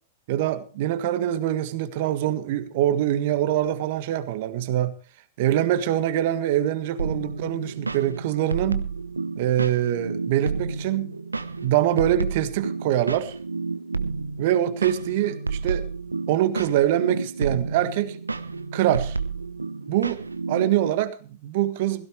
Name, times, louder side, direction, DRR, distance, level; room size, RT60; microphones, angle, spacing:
voice 1, 0.3-4.9 5.4-8.9 9.4-11.1 11.6-13.4 14.4-15.9 16.3-18.2 18.7-19.2 19.9-20.2 20.5-22.1, right 12 dB, 55° right, 1.6 m, -24 dB
sound 1, 7.0-20.9, right 4 dB, 90° right, 0.8 m, -31 dB
17.0 x 15.5 x 3.2 m
figure-of-eight pair, 100°, 0 cm